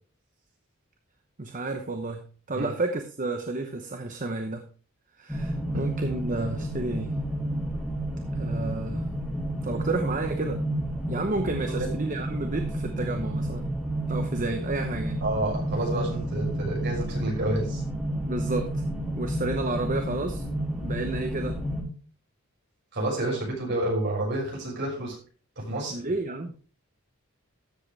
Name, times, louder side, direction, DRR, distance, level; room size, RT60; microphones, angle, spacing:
voice 1, 1.4-4.6 5.2-7.1 8.3-9.0 9.6-10.6 11.1-13.6 14.1-15.2 18.2-18.7 19.2-20.4 20.8-21.6 23.2-23.4 25.9-26.5, right 2 dB, 40° right, 6 dB, 0.9 m, -31 dB
sound 1, 5.3-21.8, right 1 dB, ahead, 2.7 m, -31 dB
voice 2, 15.2-17.8 22.9-25.1 25.6-26.0, right 1 dB, 55° right, -3 dB, 6.1 m, -29 dB
13.5 x 7.7 x 3.4 m, 0.39 s
head